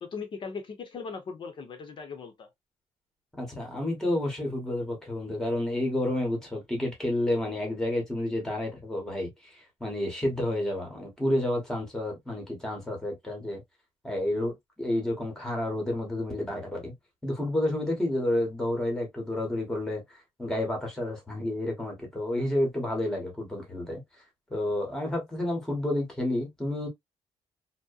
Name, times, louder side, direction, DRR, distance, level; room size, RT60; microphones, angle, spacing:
voice 1, 0.0-2.5, left 5 dB, 45° left, 0.7 m, -39 dB
voice 2, 3.4-13.6 14.0-16.9 17.2-24.0 24.5-26.9, left 1 dB, 5° left, 0.8 m, -30 dB
2.7 x 2.1 x 2.3 m
cardioid pair, 165°, 12 cm